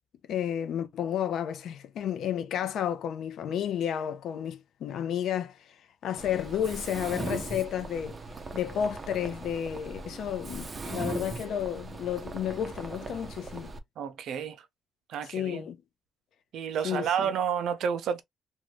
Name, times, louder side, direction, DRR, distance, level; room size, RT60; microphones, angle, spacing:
voice 1, 0.3-5.8 6.0-8.2 8.5-13.7 15.2-15.8 16.8-17.1, left 9 dB, 75° left, 0.5 m, -32 dB
Mechanisms, 6.2-13.8, right 3 dB, 30° right, 0.6 m, -39 dB
voice 2, 14.0-14.6 15.1-15.6 16.5-18.2, right 7 dB, 75° right, 0.5 m, -30 dB
2.6 x 2.3 x 3.1 m
cardioid pair, 90°, 0 cm